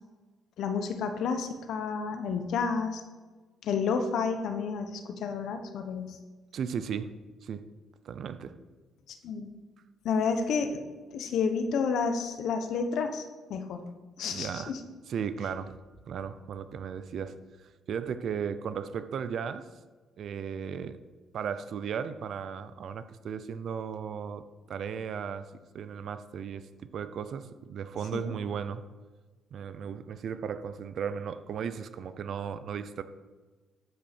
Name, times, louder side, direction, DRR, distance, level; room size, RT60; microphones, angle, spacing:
voice 1, 0.6-3.0 3.6-6.2 9.1-9.5 10.0-10.8 11.1-13.2 13.5-13.9 14.2-14.8 28.1-28.3, left 5 dB, 70° left, 7 dB, 1.0 m, -30 dB
voice 2, 6.5-7.1 7.4-7.6 8.0-8.5 14.3-14.7 15.1-15.8 16.1-17.4 17.9-19.7 20.2-21.0 21.3-24.4 24.7-28.8 29.5-33.0, right 7 dB, 55° right, 12 dB, 0.6 m, -35 dB
12.5 x 5.5 x 4.4 m, 1.3 s
cardioid pair, 115°, 0 cm